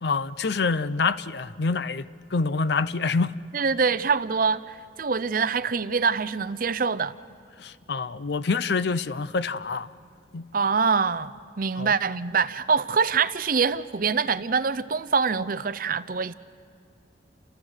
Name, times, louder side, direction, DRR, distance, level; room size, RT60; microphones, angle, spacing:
voice 1, 0.0-3.4 7.6-9.9 10.3-10.5 11.8-11.9, left 4 dB, 60° left, 0.6 m, -26 dB
voice 2, 3.5-7.2 10.5-16.3, right 5 dB, 45° right, 0.6 m, -25 dB
30.0 x 28.0 x 6.5 m
head